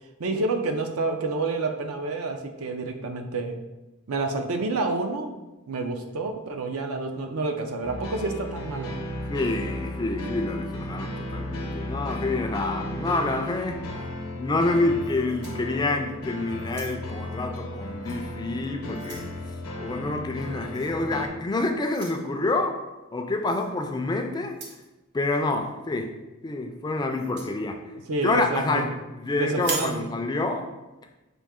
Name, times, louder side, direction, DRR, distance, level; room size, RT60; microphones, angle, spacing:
voice 1, 0.2-3.6 4.1-5.3 5.7-9.0 28.1-28.9 29.3-30.0, right 3 dB, 80° right, 5 dB, 0.5 m, -28 dB
sound 1, 7.8-21.3, left 1 dB, 80° left, 0.7 m, -35 dB
voice 2, 9.3-13.8 14.4-19.2 19.8-22.7 23.1-24.6 25.1-26.2 26.4-27.8 28.2-30.7, left 2 dB, 20° left, 5 dB, 0.3 m, -27 dB
sound 2, 15.0-16.1 16.6-17.2 18.0-18.2 18.6-19.3 20.7-21.0 21.9-22.2 23.5-23.7 24.5-24.9 27.1-27.5 29.5-30.0, right 3 dB, 50° right, 0.8 m, -37 dB
5.3 x 2.7 x 3.6 m, 1.1 s
head